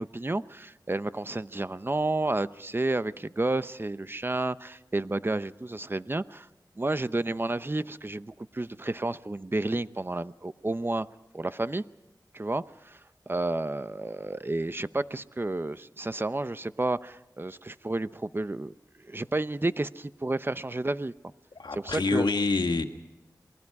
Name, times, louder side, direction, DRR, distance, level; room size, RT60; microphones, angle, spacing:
voice 1, 0.0-6.5 6.8-11.1 11.3-11.8 12.3-13.0 13.3-18.7 19.0-21.1 21.7-22.3, right 2 dB, 30° right, 13 dB, 0.8 m, -31 dB
voice 2, 21.6-22.8, left 3 dB, 85° left, 5 dB, 1.9 m, -26 dB
28.0 x 21.5 x 4.8 m, 0.98 s
wide cardioid pair, 50°, 7 cm